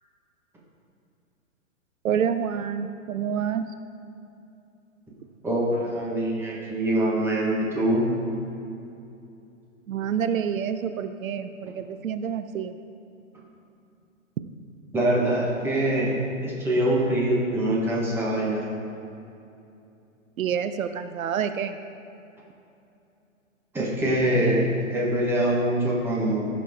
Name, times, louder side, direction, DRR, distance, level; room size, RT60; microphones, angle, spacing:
voice 1, 2.0-3.7 9.9-12.8 20.4-21.8, right 8 dB, 75° right, 10 dB, 0.7 m, -28 dB
voice 2, 5.4-8.0 14.9-16.1 16.4-18.6 23.7-24.7 24.9-26.5, right 1 dB, 5° right, -5 dB, 1.2 m, -24 dB
14.5 x 6.1 x 3.7 m, 2.7 s
hypercardioid pair, 155°, 41 cm